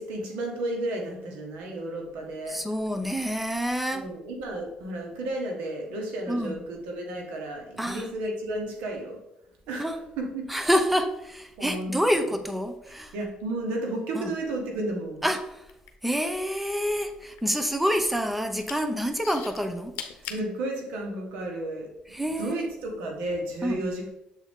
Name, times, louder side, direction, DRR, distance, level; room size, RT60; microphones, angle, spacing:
voice 1, 0.0-2.6 3.9-9.2 9.7-9.9 10.2-10.5 11.6-12.0 13.1-15.3 20.3-21.9 22.4-24.1, right 1 dB, 85° right, 1 dB, 1.5 m, -32 dB
voice 2, 2.5-4.1 6.3-6.6 7.8-8.1 9.8-10.0 10.5-13.1 14.1-14.3 15.2-15.7 16.0-19.9 22.1-22.7 23.6-23.8, equal, 5° right, 7 dB, 0.7 m, -27 dB
sound 1, 15.6-16.7 17.0-18.1 18.5-18.8 19.2-20.5 21.2-21.3, left 9 dB, 85° left, 0.7 m, -39 dB
7.2 x 4.1 x 3.6 m, 0.85 s
cardioid pair, 100°, 3 cm